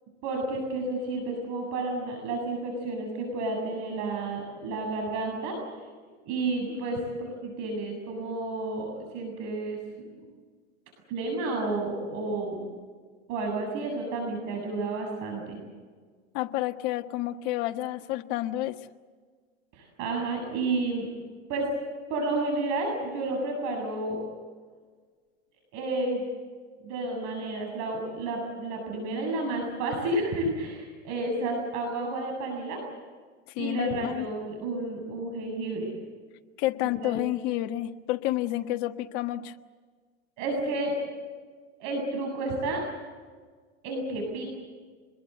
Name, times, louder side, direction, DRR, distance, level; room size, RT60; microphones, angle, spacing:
voice 1, 0.2-5.6 6.3-9.8 11.1-12.6 13.3-15.6 19.7-21.1 21.5-21.7 22.1-24.2 25.7-26.3 26.8-32.8 33.6-35.9 37.0-37.2 40.4-40.9 41.8-42.8 43.8-44.6, right 2 dB, 60° right, 2 dB, 7.6 m, -31 dB
voice 2, 16.3-18.8 33.5-34.3 36.6-39.5, left 14 dB, 60° left, 7 dB, 1.5 m, -30 dB
26.0 x 21.5 x 8.0 m, 1.5 s
supercardioid pair, 110°, 33 cm